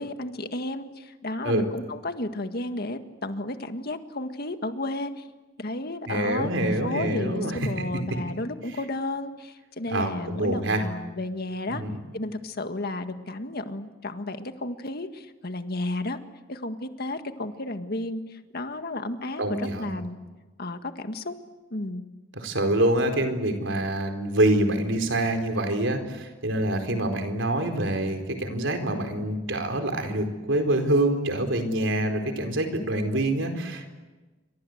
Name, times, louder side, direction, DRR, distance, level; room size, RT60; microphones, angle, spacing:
voice 1, 0.0-5.3 5.6-11.8 12.1-16.2 16.5-20.1 20.6-21.3 21.7-22.0, left 2 dB, 55° left, 7 dB, 1.8 m, -33 dB
voice 2, 6.1-7.6 9.9-10.8 11.7-11.9 19.4-20.0 22.4-33.9, right 1 dB, 75° right, 5 dB, 4.4 m, -26 dB
28.5 x 25.0 x 8.0 m, 1.2 s
head